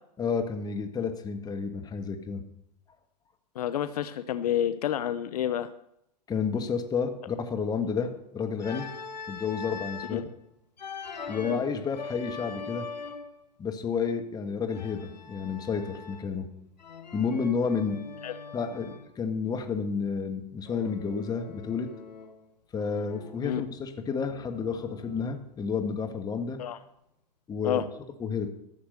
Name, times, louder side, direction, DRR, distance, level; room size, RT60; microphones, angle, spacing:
voice 1, 0.2-2.4 6.3-8.9 9.3-10.2 11.3-12.9 13.6-16.5 17.1-18.0 18.5-21.9 22.7-26.6 27.5-27.8 28.2-28.5, left 5 dB, 20° left, 6 dB, 1.5 m, -31 dB
voice 2, 3.6-5.7 10.1-10.2 11.4-11.6 18.2-18.3 23.4-23.6 26.6-26.8 27.6-27.8, left 10 dB, 65° left, 13 dB, 0.7 m, -29 dB
Organ, 8.6-10.2 10.8-13.4 14.7-16.4 16.8-19.1 20.7-22.5 22.8-25.5, left 4 dB, 90° left, 1.1 m, -42 dB
13.5 x 6.8 x 6.7 m, 0.79 s
hypercardioid pair, 105°, 21 cm